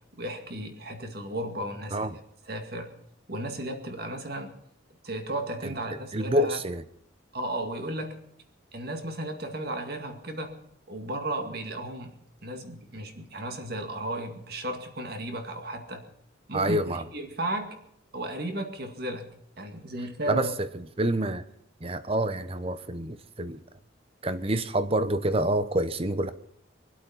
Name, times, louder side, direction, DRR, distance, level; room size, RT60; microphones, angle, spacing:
voice 1, 0.2-2.2 2.5-2.9 3.3-4.5 5.0-6.6 7.3-8.2 8.7-10.6 10.9-12.2 12.4-16.0 16.5-17.8 18.1-19.3 19.6-20.5, right 1 dB, 50° right, 5 dB, 2.1 m, -34 dB
voice 2, 5.6-6.8 16.5-17.0 20.3-20.5 21.0-21.4 21.8-23.6 24.2-26.3, right 1 dB, 30° right, 12 dB, 0.8 m, -27 dB
24.0 x 8.4 x 5.7 m, 0.72 s
head